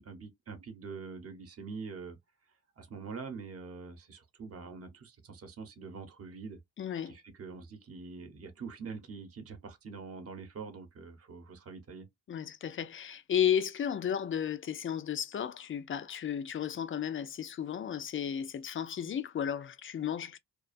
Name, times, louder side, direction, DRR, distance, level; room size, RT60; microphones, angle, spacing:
voice 1, 0.0-2.2 2.8-6.6 7.1-12.1, right 4 dB, 40° right, 0.8 m, -44 dB
voice 2, 6.8-7.1 12.3-20.4, left 9 dB, 35° left, 0.4 m, -33 dB
2.3 x 2.3 x 2.5 m
cardioid pair, 105°, 35 cm